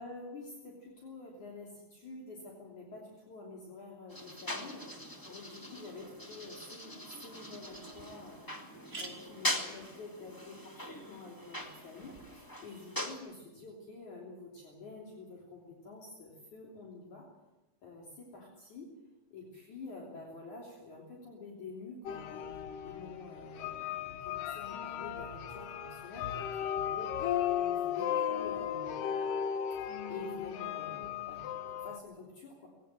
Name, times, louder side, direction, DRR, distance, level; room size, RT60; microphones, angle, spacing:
voice 1, 0.0-8.4 9.0-17.3 17.8-18.9 19.3-22.5 22.8-29.2 30.1-32.7, left 3 dB, 55° left, -2 dB, 4.5 m, -48 dB
sound 1, 4.1-13.2, equal, 15° left, 0.7 m, -41 dB
sound 2, 7.9-8.0 8.2-8.3 8.6-12.4, right 3 dB, 20° right, 2.7 m, -52 dB
sound 3, 22.1-32.0, left 9 dB, 70° left, 2.7 m, -36 dB
20.5 x 17.0 x 7.7 m, 1.0 s
omnidirectional pair, 4.1 m